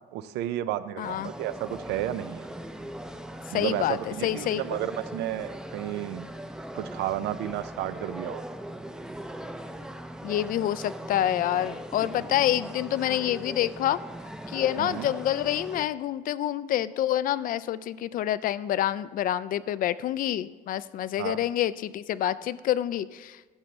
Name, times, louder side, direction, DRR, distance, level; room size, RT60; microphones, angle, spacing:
voice 1, 0.1-2.5 3.5-6.3 6.7-8.4 14.8-15.1 21.2-21.4, right 13 dB, 85° right, 14 dB, 0.5 m, -32 dB
voice 2, 1.0-1.3 3.5-4.6 10.2-14.0 14.5-23.4, left 12 dB, 55° left, 17 dB, 0.4 m, -27 dB
sound 1, 1.0-15.9, right 1 dB, 5° right, 0.5 m, -40 dB
12.5 x 7.8 x 3.2 m, 1.4 s
cardioid pair, 110°, 17 cm